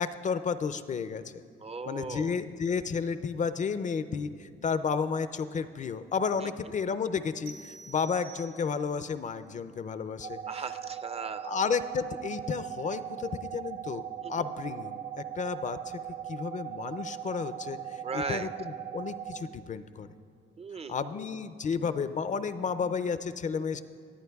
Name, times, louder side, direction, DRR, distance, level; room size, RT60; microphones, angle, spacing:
voice 1, 0.0-1.4 1.8-10.7 11.4-14.0 14.3-16.0 16.3-20.1 20.9-23.8, left 6 dB, 40° left, 13 dB, 0.4 m, -32 dB
voice 2, 1.6-2.3 10.5-11.5 14.2-14.3 18.0-18.5 20.6-21.0, right 4 dB, 30° right, 11 dB, 0.5 m, -37 dB
sound 1, 7.5-9.0, right 4 dB, 85° right, 1.3 m, -49 dB
sound 2, 10.2-19.4, right 10 dB, 50° right, 0.8 m, -39 dB
27.0 x 9.1 x 2.3 m, 2.1 s
cardioid pair, 90°, 20 cm